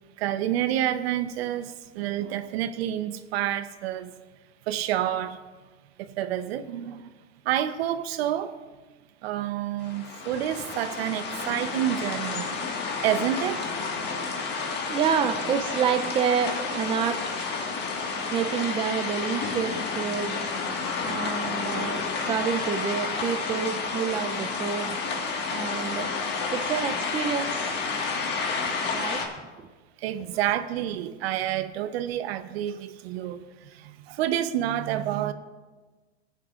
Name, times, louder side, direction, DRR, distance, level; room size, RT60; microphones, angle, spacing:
voice 1, 0.2-4.1 4.7-5.4 6.2-7.1 7.4-8.5 9.2-12.7 13.0-13.7 30.0-33.4 33.7-35.3, right 11 dB, 70° right, 0.8 m, -28 dB
sound 1, 9.8-29.3, left 4 dB, 30° left, 1.6 m, -30 dB
voice 2, 14.3-14.6 14.9-17.2 18.3-20.4 21.0-25.0 25.5-26.1 26.5-27.8 28.7-29.2, right 7 dB, 15° right, 0.5 m, -28 dB
18.5 x 9.3 x 2.4 m
supercardioid pair, 130°, 32 cm